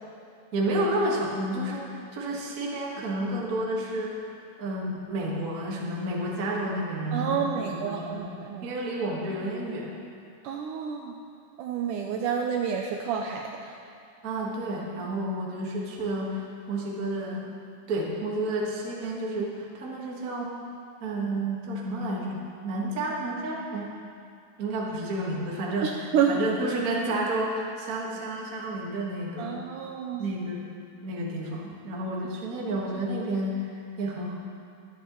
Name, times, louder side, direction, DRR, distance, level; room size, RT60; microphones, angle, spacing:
voice 1, 0.5-4.3 4.6-8.3 8.6-10.0 14.2-17.5 17.9-20.5 21.0-22.4 22.6-23.9 24.6-29.6 30.2-30.7 31.0-34.3, right 1 dB, 45° right, -3 dB, 1.1 m, -31 dB
voice 2, 7.1-8.8 10.4-11.1 11.6-13.8 25.8-26.4 29.4-30.2, right 7 dB, 80° right, 2 dB, 1.9 m, -29 dB
23.0 x 8.4 x 3.1 m, 2.4 s
omnidirectional pair, 4.1 m